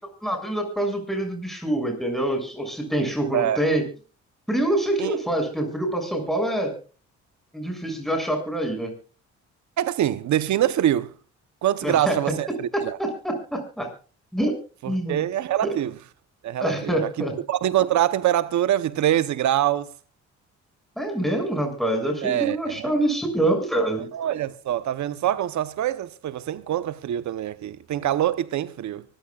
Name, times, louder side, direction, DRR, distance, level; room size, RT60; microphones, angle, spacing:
voice 1, 0.2-3.8 4.5-6.7 7.5-8.9 11.8-12.2 12.7-13.9 14.3-14.5 14.8-15.2 16.6-17.3 21.0-24.1, right 1 dB, ahead, 6.8 m, -25 dB
voice 2, 9.8-11.1 11.6-13.0 14.8-16.0 16.4-17.1 17.5-19.9 22.2-22.9 24.1-29.0, right 12 dB, 70° right, 0.9 m, -24 dB
24.5 x 15.0 x 2.4 m
cardioid pair, 90°, 30 cm